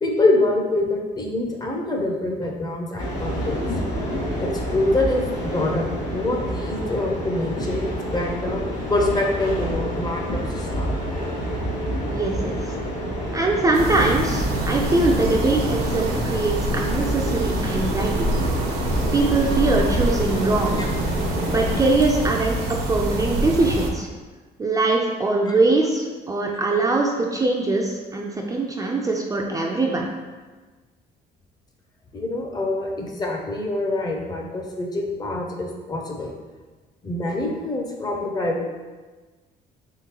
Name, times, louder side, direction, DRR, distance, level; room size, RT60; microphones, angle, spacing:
voice 1, 0.0-3.6 4.4-8.6 8.9-10.9 20.8-20.9 25.5-25.6 32.1-36.3 37.0-38.6, left 2 dB, 25° left, 1 dB, 0.6 m, -25 dB
sound 1, 3.0-21.8, equal, 60° left, 1.3 m, -28 dB
voice 2, 12.1-12.6 13.3-18.3 19.1-20.9 21.5-22.6 22.9-24.1 24.6-30.1, right 3 dB, 20° right, -1 dB, 0.4 m, -22 dB
sound 2, 13.7-23.9, right 1 dB, 70° right, 0.7 m, -26 dB
3.7 x 3.5 x 2.9 m, 1.3 s
cardioid pair, 110°, 17 cm